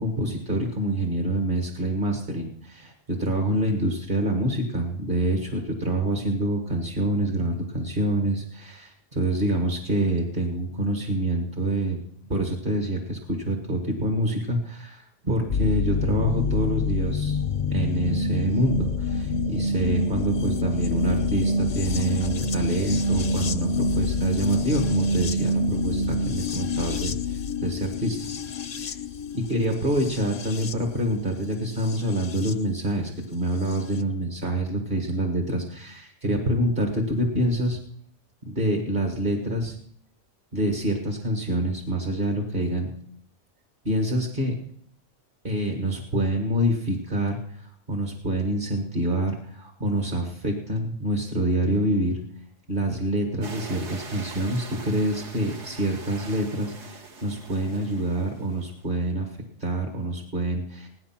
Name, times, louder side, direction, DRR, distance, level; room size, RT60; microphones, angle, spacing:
voice 1, 0.0-12.0 12.3-17.4 17.7-27.1 27.6-28.3 28.7-28.9 29.3-37.8 38.5-39.8 40.5-42.9 43.8-44.6 45.4-52.2 52.7-60.9, right 1 dB, 45° right, 3 dB, 1.7 m, -26 dB
sound 1, 15.5-32.5 33.7-33.8, left 2 dB, 45° left, 0.6 m, -27 dB
sound 2, 53.4-58.8, right 4 dB, 65° right, 1.5 m, -42 dB
16.5 x 11.0 x 5.9 m, 0.64 s
omnidirectional pair, 1.2 m